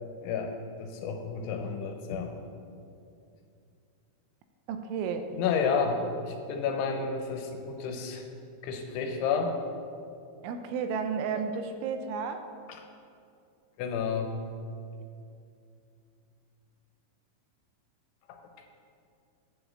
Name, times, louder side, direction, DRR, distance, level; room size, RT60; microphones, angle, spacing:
voice 1, 0.2-0.5 0.8-2.3 5.3-8.3 8.6-9.6 13.8-14.4 18.3-18.4, left 5 dB, 85° left, 4 dB, 3.2 m, -30 dB
voice 2, 4.7-5.3 10.4-12.4, right 6 dB, 85° right, 7 dB, 3.0 m, -32 dB
10.0 x 5.1 x 7.3 m, 2.5 s
omnidirectional pair, 5.5 m